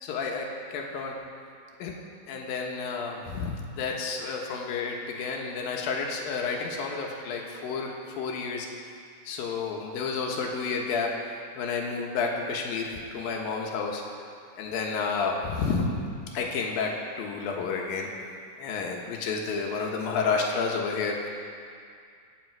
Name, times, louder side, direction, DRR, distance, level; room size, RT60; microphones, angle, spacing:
voice 1, 0.0-0.5 0.7-1.1 1.8-1.9 2.3-8.7 9.3-11.1 11.6-14.0 14.6-15.9 16.3-16.9 17.2-18.1 18.6-21.3, left 5 dB, 90° left, 0 dB, 3.1 m, -30 dB
24.5 x 8.8 x 4.7 m, 2.3 s
omnidirectional pair, 4.0 m